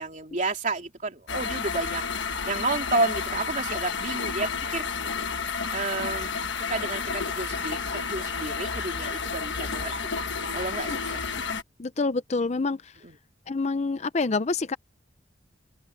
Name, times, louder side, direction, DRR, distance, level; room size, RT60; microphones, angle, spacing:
voice 1, 0.0-2.0 2.4-4.9 5.7-6.3 6.6-9.9 10.5-11.3 13.0-13.2, right 3 dB, 40° right, 3.4 m, -31 dB
sound 1, 1.3-11.6, left 5 dB, 70° left, 1.4 m, -31 dB
Wind instrument woodwind instrument, 7.0-9.8, left 1 dB, 10° left, 3.7 m, -51 dB
voice 2, 11.5-12.9 13.5-14.8, left 3 dB, 35° left, 0.5 m, -27 dB
open air
head